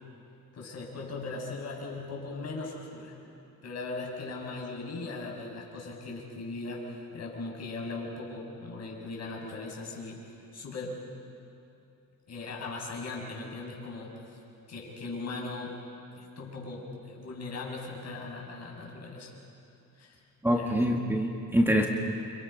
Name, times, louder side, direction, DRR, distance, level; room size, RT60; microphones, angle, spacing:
voice 1, 0.5-3.2 3.6-10.2 10.5-11.0 12.3-14.3 14.7-15.7 16.1-19.3 20.0-20.2 20.5-20.8, left 3 dB, 50° left, -1 dB, 6.5 m, -39 dB
voice 2, 20.4-21.9, equal, 5° right, 1 dB, 1.8 m, -25 dB
29.5 x 26.0 x 5.6 m, 2.8 s
cardioid pair, 115°, 34 cm